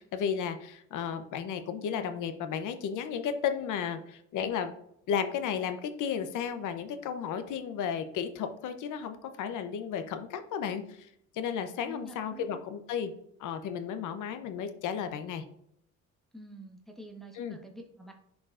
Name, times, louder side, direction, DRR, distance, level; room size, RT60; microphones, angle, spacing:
voice 1, 0.0-4.7 5.1-13.1 13.4-15.4 17.4-17.6, left 7 dB, 80° left, 9 dB, 0.8 m, -33 dB
voice 2, 11.8-12.6 16.3-18.1, right 1 dB, ahead, 1 dB, 1.3 m, -47 dB
10.0 x 4.9 x 2.5 m, 0.73 s
cardioid pair, 90°, 30 cm